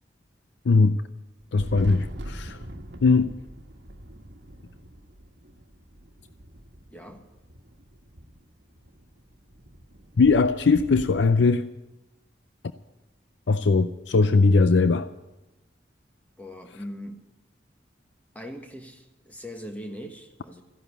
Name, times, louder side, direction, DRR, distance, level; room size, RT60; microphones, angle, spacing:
voice 1, 0.6-1.0 1.5-2.6 3.0-3.3 10.2-11.7 13.5-15.1, left 4 dB, 80° left, 12 dB, 0.5 m, -20 dB
Thunder, 1.4-11.2, right 1 dB, 80° right, 1.3 m, -43 dB
voice 2, 6.9-7.2 16.4-17.3 18.3-20.6, equal, 10° left, 4 dB, 1.4 m, -40 dB
14.0 x 11.0 x 8.3 m, 1.0 s
head